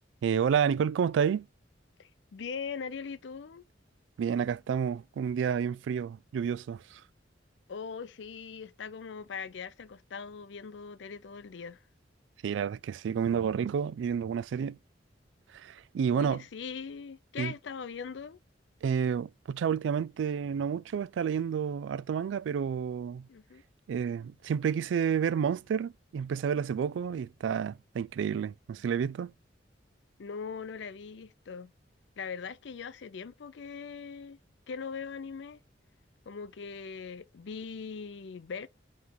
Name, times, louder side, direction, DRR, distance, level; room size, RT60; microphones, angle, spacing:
voice 1, 0.2-1.5 4.2-7.0 12.4-14.8 15.5-16.4 17.4-17.5 18.8-23.3 23.9-29.3, right 7 dB, 85° right, 0.3 m, -30 dB
voice 2, 2.0-3.6 7.7-11.8 16.1-18.4 23.3-23.6 30.2-31.7 32.2-34.4 34.7-35.6 36.3-38.7, left 5 dB, 75° left, 0.5 m, -41 dB
5.8 x 3.2 x 5.4 m
head